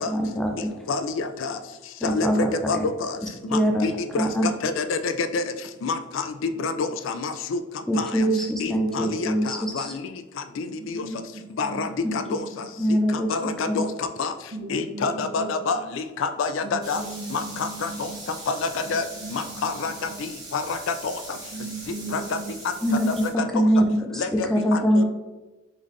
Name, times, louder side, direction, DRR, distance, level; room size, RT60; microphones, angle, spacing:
voice 1, 0.1-0.7 2.0-2.5 3.5-3.9 4.2-4.5 7.9-9.9 12.8-13.3 13.7-13.8 22.8-23.1 23.5-24.2 24.5-25.0, equal, ahead, 1 dB, 0.4 m, -23 dB
voice 2, 0.9-1.6 2.0-3.2 3.5-5.4 5.8-7.6 8.0-8.3 8.6-10.0 10.6-11.1 11.6-12.4 13.1-14.3 14.7-17.0 17.3-18.1 18.5-19.1 19.3-19.9 20.2-21.2 22.1-22.4 23.4-23.7 24.1-25.0, left 4 dB, 70° left, 9 dB, 0.3 m, -28 dB
voice 3, 8.1-8.5 9.1-9.3 10.6-12.4 14.5-15.5 15.8-15.9 16.6-18.1 18.9-19.0 19.2-19.7 20.1-20.3 21.5-22.5, right 3 dB, 60° right, 1 dB, 0.8 m, -37 dB
sound 1, 16.8-23.3, right 2 dB, 20° right, 0.9 m, -41 dB
3.8 x 3.6 x 3.1 m, 1.1 s
head